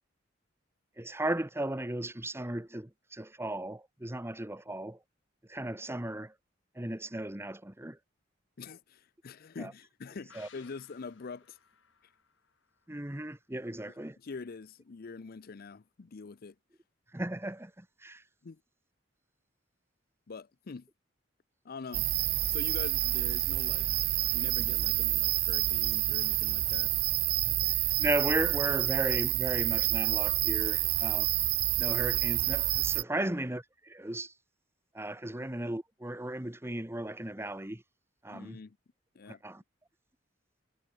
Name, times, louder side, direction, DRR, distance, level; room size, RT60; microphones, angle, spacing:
voice 1, 1.0-5.0 5.5-6.3 6.7-8.0 9.6-9.7 10.3-10.5 12.9-14.2 17.1-18.2 27.7-31.3 31.8-34.3 34.9-37.8 38.2-38.6 39.3-39.6, right 1 dB, 15° right, 1.2 m, -36 dB
voice 2, 8.6-11.6 13.9-16.6 18.4-18.6 20.3-20.9 21.6-22.1 22.5-23.9 24.3-26.9 30.8-30.9 33.1-33.4 35.3-35.5 38.3-38.8 39.1-39.4, left 4 dB, 55° left, 0.5 m, -45 dB
sound 1, 10.3-13.8 14.1-14.2, left 7 dB, 85° left, 3.4 m, -61 dB
sound 2, 21.9-33.0, right 17 dB, 55° right, 0.3 m, -28 dB
head